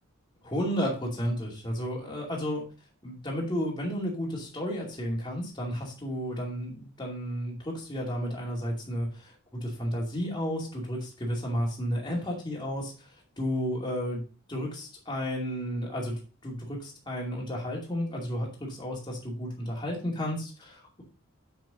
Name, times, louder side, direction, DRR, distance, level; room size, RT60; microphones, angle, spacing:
voice 1, 0.4-2.6 3.0-12.9 13.4-14.2 14.5-21.0, equal, 20° left, -2 dB, 2.4 m, -32 dB
6.7 x 6.3 x 5.1 m, 0.37 s
head